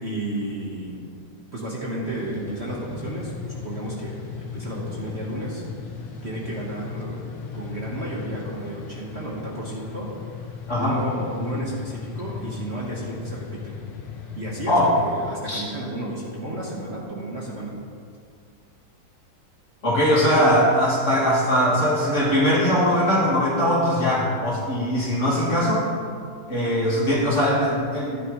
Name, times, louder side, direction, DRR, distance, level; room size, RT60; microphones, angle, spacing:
voice 1, 0.0-1.0 1.5-5.6 6.2-10.1 10.8-13.8 14.3-17.8, right 1 dB, 40° right, -4 dB, 1.5 m, -32 dB
sound 1, 2.0-15.4, left 5 dB, 85° left, 1.8 m, -36 dB
voice 2, 19.8-25.9 26.5-28.2, equal, 40° left, -6 dB, 2.7 m, -21 dB
14.5 x 10.0 x 3.2 m, 2.3 s
omnidirectional pair, 2.0 m